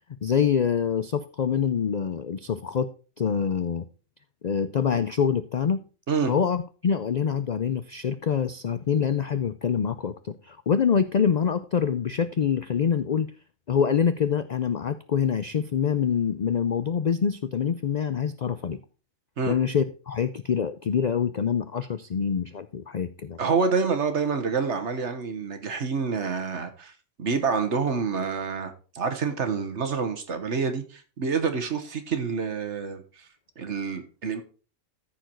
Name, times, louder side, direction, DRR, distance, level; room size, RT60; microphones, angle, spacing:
voice 1, 0.2-2.9 3.2-3.9 4.4-5.8 6.3-13.3 13.7-18.8 19.5-23.4, left 7 dB, 65° left, 0.4 m, -25 dB
voice 2, 23.4-26.9 27.2-33.3 33.6-34.4, right 5 dB, 60° right, 1.5 m, -27 dB
14.0 x 4.7 x 4.4 m
omnidirectional pair, 1.4 m